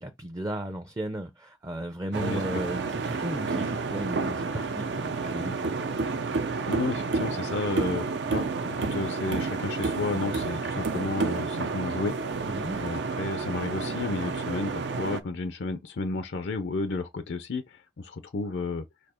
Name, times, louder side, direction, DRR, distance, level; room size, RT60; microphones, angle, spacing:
voice 1, 0.0-5.8 12.4-12.8, right 1 dB, 20° right, 0.4 m, -35 dB
sound 1, 2.1-15.2, right 4 dB, 85° right, 0.6 m, -30 dB
voice 2, 2.2-2.6 6.7-12.2 12.8-18.9, left 3 dB, 75° left, 0.5 m, -32 dB
4.3 x 2.7 x 4.3 m
head